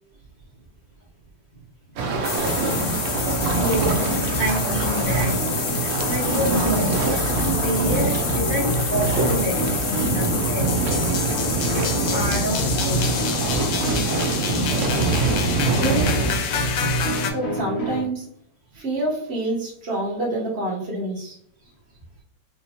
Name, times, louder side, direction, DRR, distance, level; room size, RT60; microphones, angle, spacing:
sound 1, 2.0-16.4, right 4 dB, 80° right, 0.7 m, -25 dB
sound 2, 2.2-17.3, left 7 dB, 85° left, 1.4 m, -28 dB
sound 3, 2.4-18.0, equal, 50° left, 0.8 m, -28 dB
voice 1, 3.5-4.1 4.4-7.0 7.6-10.7 11.7-13.1, equal, 30° left, -9 dB, 1.0 m, -28 dB
voice 2, 9.9-10.5 11.1-11.2 11.7-11.8 15.3-16.2 16.9-18.3 18.7-21.4, right 1 dB, 40° right, -3 dB, 1.1 m, -29 dB
3.5 x 2.9 x 2.8 m, 0.66 s
omnidirectional pair, 2.0 m